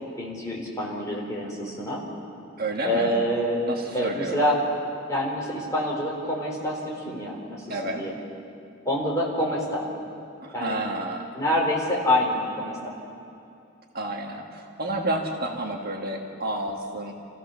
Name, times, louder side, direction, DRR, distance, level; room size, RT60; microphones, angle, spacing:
voice 1, 0.2-2.0 2.8-3.6 3.9-4.6 5.1-8.1 8.8-9.8 10.5-10.8 11.3-12.9, left 1 dB, 15° left, -3 dB, 4.2 m, -26 dB
voice 2, 2.6-3.2 3.6-4.5 7.7-8.0 10.4-11.3 13.9-17.1, right 1 dB, 45° right, 1 dB, 1.6 m, -30 dB
28.0 x 15.5 x 7.1 m, 2.7 s
head